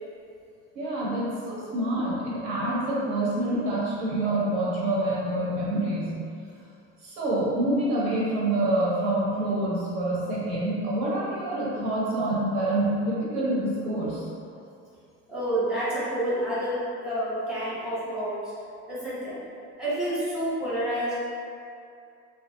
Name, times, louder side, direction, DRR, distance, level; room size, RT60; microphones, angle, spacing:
voice 1, 0.7-6.2 7.0-14.2, right 1 dB, 70° right, -7 dB, 1.1 m, -27 dB
voice 2, 15.3-18.4 18.9-19.4 19.8-21.1, right 1 dB, ahead, -10 dB, 0.9 m, -29 dB
3.0 x 2.7 x 2.7 m, 2.4 s
supercardioid pair, 125°, 33 cm